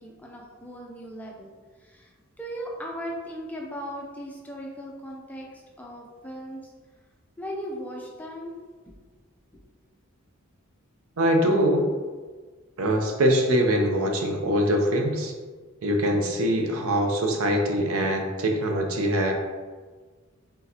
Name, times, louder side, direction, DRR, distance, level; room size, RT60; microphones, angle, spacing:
voice 1, 0.0-1.5 1.8-6.7 7.4-8.6, equal, 5° left, -2 dB, 0.5 m, -38 dB
voice 2, 11.2-11.9 12.8-15.3 15.8-19.3, equal, 75° right, 2 dB, 0.6 m, -23 dB
4.1 x 3.8 x 2.8 m, 1.4 s
head